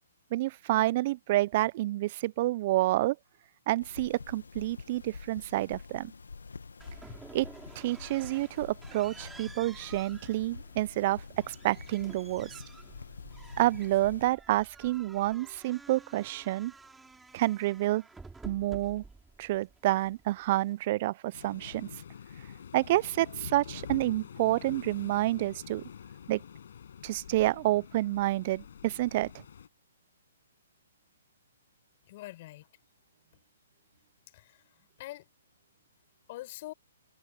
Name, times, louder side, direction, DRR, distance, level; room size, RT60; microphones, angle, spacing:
voice 1, 0.3-3.2 3.7-6.1 7.3-7.5 7.8-12.5 13.6-16.7 17.3-18.0 18.4-19.0 19.4-21.9 22.7-25.8 26.3-26.4 27.0-29.3, right 16 dB, 40° right, 0.5 m, -29 dB
sound 1, 3.8-14.2, left 4 dB, 85° left, 1.2 m, -47 dB
sound 2, 6.8-20.9, right 3 dB, 5° right, 5.3 m, -52 dB
Waves surf, 21.3-29.7, left 8 dB, 65° left, 6.3 m, -46 dB
voice 2, 32.0-32.7 34.3-34.6 35.0-35.3 36.3-36.7, left 17 dB, 40° left, 6.2 m, -44 dB
hypercardioid pair, 145°, 0 cm